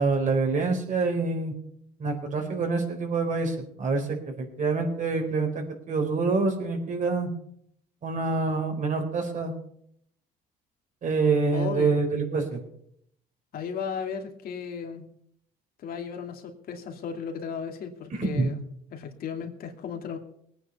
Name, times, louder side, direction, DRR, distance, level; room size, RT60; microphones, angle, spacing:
voice 1, 0.0-1.5 2.0-7.3 8.0-9.5 11.0-12.6 18.1-18.5, right 4 dB, 50° right, 4 dB, 4.5 m, -26 dB
voice 2, 11.5-12.0 13.5-15.1 15.8-18.6 18.9-20.2, left 6 dB, 60° left, 4 dB, 2.5 m, -35 dB
20.0 x 9.2 x 5.5 m, 0.68 s
cardioid pair, 110°, 17 cm